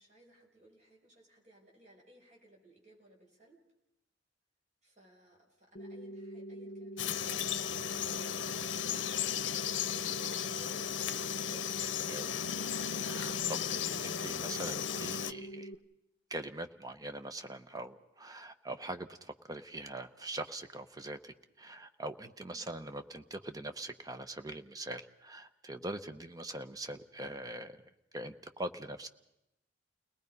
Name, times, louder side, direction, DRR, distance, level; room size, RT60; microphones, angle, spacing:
voice 1, 0.0-3.6 4.8-12.1 22.5-22.8, equal, 35° right, -1 dB, 5.1 m, -61 dB
sound 1, 5.8-15.8, right 1 dB, 45° left, 0.8 m, -45 dB
Frog, 7.0-15.3, left 9 dB, 75° left, 0.7 m, -35 dB
voice 2, 12.1-15.7 16.3-27.8 28.1-29.1, right 1 dB, 20° right, 9 dB, 0.9 m, -43 dB
30.0 x 19.0 x 5.4 m, 0.88 s
head